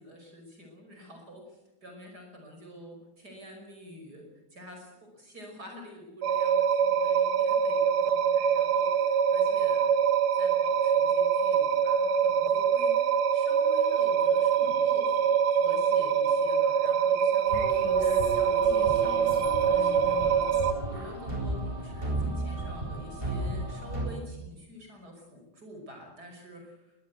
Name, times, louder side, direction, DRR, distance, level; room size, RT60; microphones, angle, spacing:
voice 1, 0.0-9.9 10.3-27.0, equal, 45° right, 3 dB, 6.1 m, -47 dB
sound 1, 6.2-20.7, right 7 dB, 85° right, 1.9 m, -24 dB
sound 2, 17.4-24.1, right 1 dB, 25° right, 8.3 m, -34 dB
22.5 x 20.5 x 8.4 m, 0.95 s
omnidirectional pair, 2.3 m